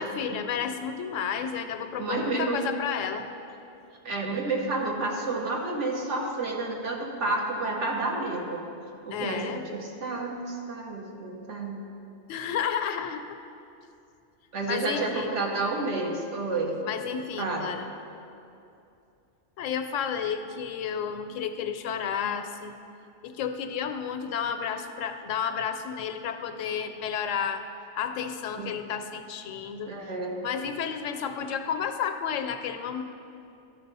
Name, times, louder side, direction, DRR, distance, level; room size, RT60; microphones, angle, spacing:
voice 1, 0.0-3.3 9.1-9.6 12.3-13.2 14.7-15.4 16.8-17.9 19.6-22.8 23.2-27.6 28.0-29.9 30.4-33.0, left 7 dB, 85° left, 8 dB, 0.9 m, -31 dB
voice 2, 2.0-2.6 4.0-8.6 9.1-11.8 14.5-16.8 17.4-17.7 28.6-28.8 29.8-30.4, right 2 dB, 75° right, 0 dB, 1.4 m, -30 dB
12.0 x 4.5 x 5.4 m, 2.6 s
omnidirectional pair, 1.3 m